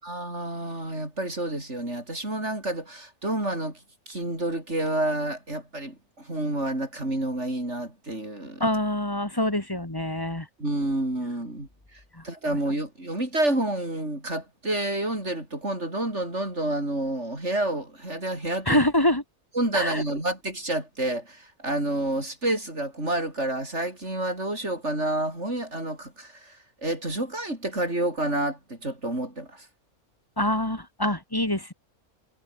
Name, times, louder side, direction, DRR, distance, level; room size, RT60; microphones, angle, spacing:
voice 1, 0.0-8.7 10.6-18.8 19.5-29.7, right 1 dB, 50° right, 7.9 m, -29 dB
voice 2, 8.6-10.5 12.1-12.2 18.7-19.2 19.7-20.0 30.4-31.7, left 1 dB, 15° left, 1.9 m, -25 dB
omnidirectional pair, 1.5 m